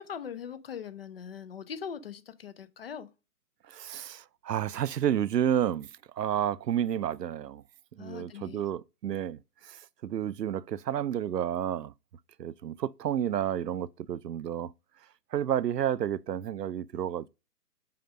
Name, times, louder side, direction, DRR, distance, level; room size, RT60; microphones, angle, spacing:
voice 1, 0.0-3.1 8.0-8.6, left 7 dB, 40° left, 0.8 m, -41 dB
voice 2, 3.7-5.9 6.2-7.6 8.0-11.9 12.4-14.7 15.3-17.3, right 10 dB, 90° right, 0.7 m, -31 dB
5.8 x 5.1 x 5.0 m
hypercardioid pair, 160°, 47 cm